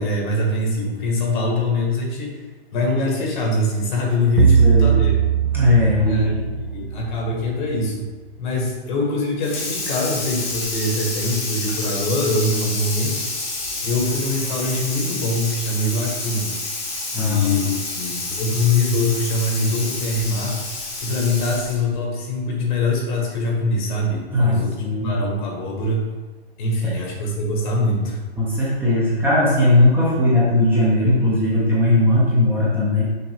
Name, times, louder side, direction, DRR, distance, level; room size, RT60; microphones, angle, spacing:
voice 1, 0.0-2.4 2.7-5.2 6.0-8.0 8.4-13.2 13.8-16.5 17.2-20.6 21.0-24.7 25.0-26.1 26.6-28.2, left 2 dB, 45° left, 0 dB, 1.7 m, -23 dB
voice 2, 4.4-5.0 5.5-6.5 17.1-17.7 24.3-25.1 26.8-26.9 28.4-33.0, left 2 dB, 5° right, -7 dB, 1.1 m, -18 dB
sound 1, 4.4-7.1, right 7 dB, 80° right, 0.8 m, -18 dB
Water tap faucet / Sink (filling or washing), 9.4-21.9, left 2 dB, 20° left, 1.2 m, -29 dB
6.3 x 4.4 x 3.6 m, 1.3 s
hypercardioid pair, 135°, 32 cm